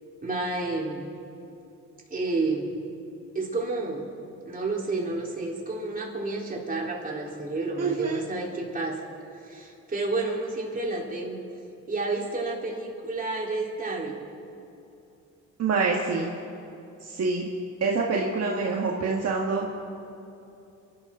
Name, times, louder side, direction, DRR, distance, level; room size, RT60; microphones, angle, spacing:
voice 1, 0.2-1.1 2.1-2.8 3.3-4.1 4.4-9.0 9.4-11.4 11.9-14.2, right 3 dB, 30° right, -3 dB, 3.8 m, -30 dB
voice 2, 7.8-8.2 15.6-16.3 17.0-17.5 17.8-19.8, right 4 dB, 55° right, -2 dB, 1.7 m, -26 dB
29.0 x 12.5 x 3.8 m, 2.8 s
cardioid pair, 90°, 30 cm